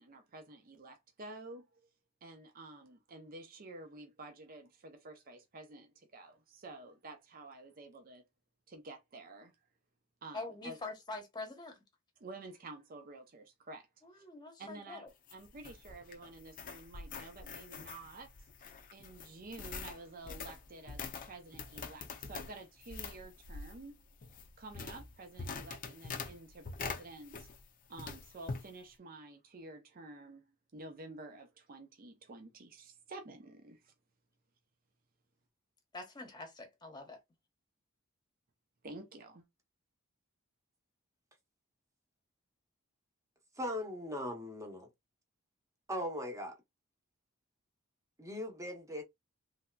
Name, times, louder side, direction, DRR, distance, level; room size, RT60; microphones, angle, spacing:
voice 1, 0.0-1.7 2.2-8.2 8.7-9.5 10.2-10.8 12.2-13.9 14.2-14.3 14.6-18.3 18.9-24.0 24.6-27.5 27.9-30.4 30.7-33.9 38.8-39.5, right 2 dB, 45° right, 0.6 m, -50 dB
voice 2, 10.3-11.8 14.0-15.1 35.9-37.2, left 2 dB, 20° left, 1.0 m, -45 dB
sound 1, 15.1-27.7 28.0-28.7, left 4 dB, 40° left, 0.5 m, -45 dB
voice 3, 43.6-44.9 45.9-46.5 48.2-49.0, equal, 15° right, 0.9 m, -39 dB
3.2 x 2.8 x 2.3 m
head